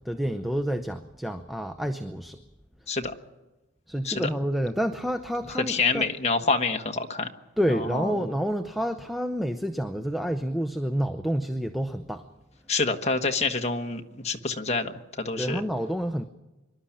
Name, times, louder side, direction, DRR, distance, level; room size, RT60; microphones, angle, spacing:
voice 1, 0.0-2.4 3.9-6.1 7.6-12.2 15.4-16.2, equal, ahead, 8 dB, 0.6 m, -29 dB
voice 2, 5.5-7.3 7.7-8.2 12.7-15.6, left 4 dB, 30° left, 5 dB, 1.3 m, -27 dB
25.0 x 12.0 x 10.0 m, 1.1 s
head